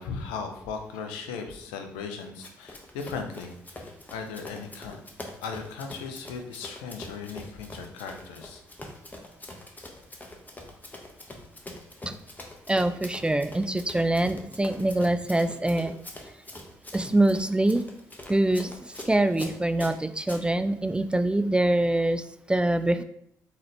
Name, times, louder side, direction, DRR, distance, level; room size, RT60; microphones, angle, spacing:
voice 1, 0.0-5.0 5.4-8.6, left 5 dB, 80° left, 5 dB, 0.5 m, -37 dB
Run, 2.4-20.4, left 1 dB, 20° left, 0.9 m, -44 dB
voice 2, 12.7-15.9 16.9-17.8 18.3-23.0, right 1 dB, 10° right, 10 dB, 0.3 m, -24 dB
3.8 x 2.9 x 3.2 m, 0.72 s
hypercardioid pair, 45°, 9 cm